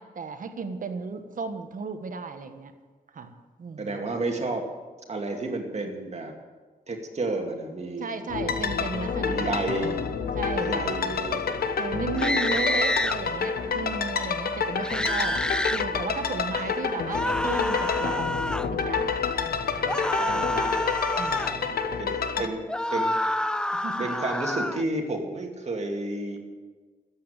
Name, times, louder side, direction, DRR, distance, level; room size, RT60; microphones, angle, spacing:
voice 1, 0.0-2.7 3.1-3.3 3.6-4.0 8.0-9.5 10.3-10.9 11.8-15.4 15.7-19.2 19.7-20.4 21.2-21.7 22.4-22.5 23.7-24.1, right 5 dB, 60° right, 7 dB, 1.4 m, -35 dB
voice 2, 3.8-4.7 5.1-6.3 6.9-8.2 9.2-10.0 10.5-11.8 12.5-12.9 16.6-16.8 20.2-20.7 21.7-23.1 24.0-26.4, right 2 dB, 45° right, 2 dB, 2.3 m, -31 dB
sound 1, 8.3-22.5, left 6 dB, 90° left, 1.0 m, -28 dB
sound 2, 12.2-13.2 14.8-15.8 17.1-18.7 19.9-21.6 22.7-24.8, left 1 dB, 5° left, 0.4 m, -28 dB
13.5 x 8.8 x 8.9 m, 1.4 s
wide cardioid pair, 115°, 15 cm